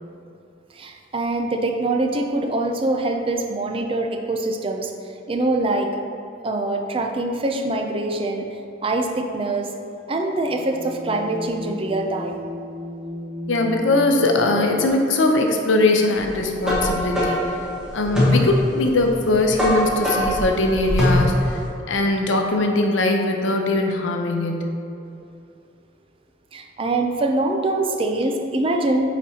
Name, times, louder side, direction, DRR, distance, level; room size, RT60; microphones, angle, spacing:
voice 1, 0.7-4.9 5.3-6.1 6.4-8.4 8.8-9.7 10.1-12.4 26.5-29.2, right 2 dB, 30° right, 3 dB, 0.4 m, -24 dB
sound 1, 10.3-14.9, left 1 dB, 75° right, 1.2 m, -34 dB
voice 2, 13.5-17.5 17.9-21.6 21.9-24.7, left 2 dB, 90° left, 3 dB, 0.7 m, -21 dB
sound 2, 16.2-21.7, left 1 dB, 5° right, 1.3 m, -22 dB
9.2 x 4.1 x 2.8 m, 2.7 s
head